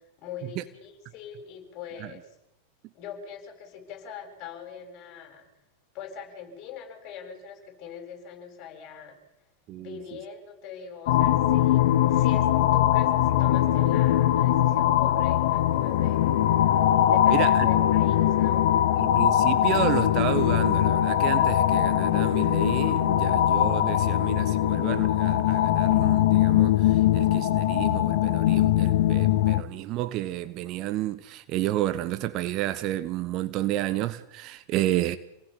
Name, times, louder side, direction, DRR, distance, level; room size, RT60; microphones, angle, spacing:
voice 1, 0.2-2.3 2.9-5.5 5.9-9.2 9.8-16.4 17.1-18.6, left 6 dB, 40° left, 7.7 m, -42 dB
voice 2, 9.7-10.0 16.5-16.9 17.3-17.8 19.0-35.2, right 14 dB, 40° right, 1.3 m, -31 dB
sound 1, 11.1-29.6, left 12 dB, 55° left, 1.5 m, -21 dB
28.0 x 19.5 x 8.6 m
figure-of-eight pair, 90°, 0 cm